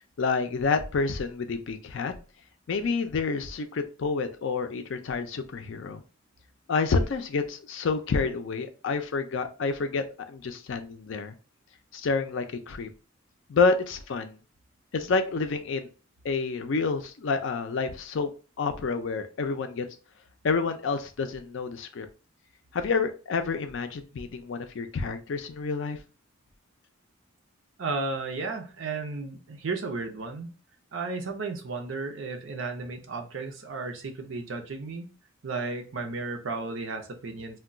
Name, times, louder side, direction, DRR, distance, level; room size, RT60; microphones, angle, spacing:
voice 1, 0.2-2.1 2.7-6.0 6.7-11.3 11.9-12.9 13.5-14.4 14.9-15.9 16.2-18.3 18.6-19.9 20.4-22.1 22.7-26.0, left 4 dB, 65° left, 7 dB, 0.4 m, -28 dB
voice 2, 27.8-30.5 30.9-35.1 35.4-37.6, right 3 dB, 70° right, 4 dB, 0.6 m, -34 dB
2.3 x 2.2 x 3.7 m, 0.35 s
head